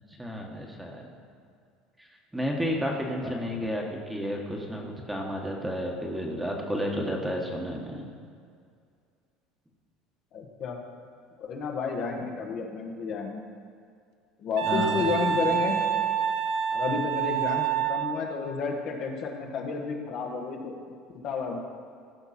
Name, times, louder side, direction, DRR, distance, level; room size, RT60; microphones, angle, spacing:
voice 1, 0.2-1.0 2.3-8.0 12.1-12.3 14.6-15.3, equal, 5° right, 0 dB, 1.5 m, -32 dB
voice 2, 10.3-10.8 11.4-13.4 14.4-15.7 16.7-20.8 21.1-21.6, left 5 dB, 55° left, 1 dB, 1.5 m, -31 dB
Wind instrument woodwind instrument, 14.6-18.2, right 9 dB, 70° right, 0.8 m, -27 dB
15.5 x 5.8 x 4.3 m, 2.2 s
supercardioid pair, 110°, 0 cm